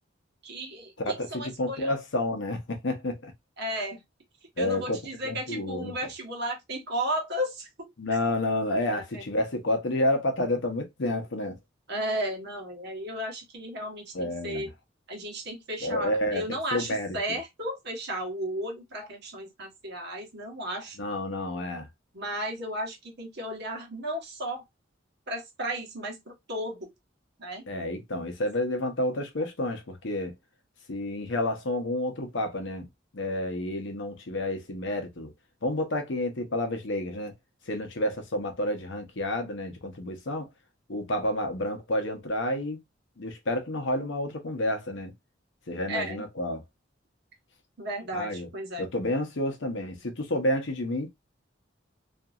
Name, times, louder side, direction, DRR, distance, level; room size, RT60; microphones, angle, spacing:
voice 1, 0.4-1.9 3.6-4.0 4.6-7.9 8.9-9.2 11.9-14.7 15.1-21.0 22.1-24.6 25.3-26.9 27.4-27.6 45.9-46.2 47.8-48.9, equal, 60° right, 1.2 m, -34 dB
voice 2, 1.0-3.3 4.6-5.9 8.0-11.6 14.1-14.7 15.8-17.2 21.0-21.9 27.7-30.3 30.9-32.9 33.1-35.3 35.6-37.3 37.7-40.5 40.9-42.8 43.2-45.1 45.7-46.6 48.1-48.5 48.8-51.1, left 1 dB, 70° left, 0.8 m, -30 dB
2.8 x 2.5 x 2.4 m
head